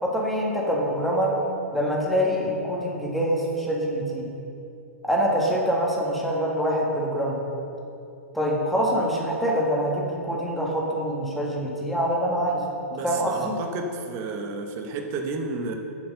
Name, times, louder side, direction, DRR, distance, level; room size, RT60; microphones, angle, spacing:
voice 1, 0.0-1.3 1.7-4.3 5.0-7.4 8.3-12.6 13.0-13.5, equal, ahead, -3 dB, 1.6 m, -25 dB
voice 2, 12.9-15.8, right 3 dB, 30° right, 4 dB, 1.0 m, -32 dB
7.2 x 6.9 x 6.6 m, 2.7 s
figure-of-eight pair, 110°, 8 cm